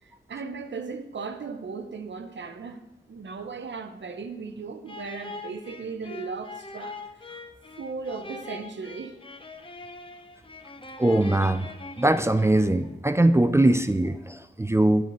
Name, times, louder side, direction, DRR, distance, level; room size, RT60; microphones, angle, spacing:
voice 1, 0.0-2.8 3.1-7.0 7.3-7.4 7.8-9.2, right 4 dB, 65° right, 0.7 m, -37 dB
sound 1, 4.9-12.9, left 3 dB, 25° left, 0.7 m, -42 dB
voice 2, 11.0-11.7 12.0-15.0, right 1 dB, 15° right, 0.4 m, -21 dB
8.3 x 7.2 x 3.0 m
cardioid pair, 45°, 20 cm